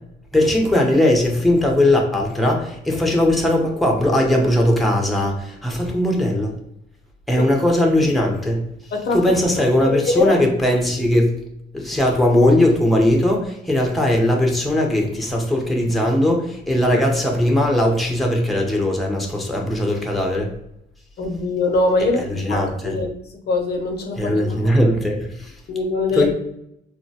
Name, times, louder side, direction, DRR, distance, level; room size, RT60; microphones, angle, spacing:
voice 1, 0.3-6.5 7.3-8.6 9.1-11.4 11.7-20.5 22.2-23.0 24.2-25.5 26.1-26.3, left 1 dB, ahead, 1 dB, 0.6 m, -19 dB
voice 2, 9.9-10.3 21.2-23.1 23.5-24.3 25.7-26.3, left 3 dB, 55° left, 4 dB, 0.5 m, -22 dB
3.1 x 2.1 x 2.7 m, 0.77 s
cardioid pair, 90°, 20 cm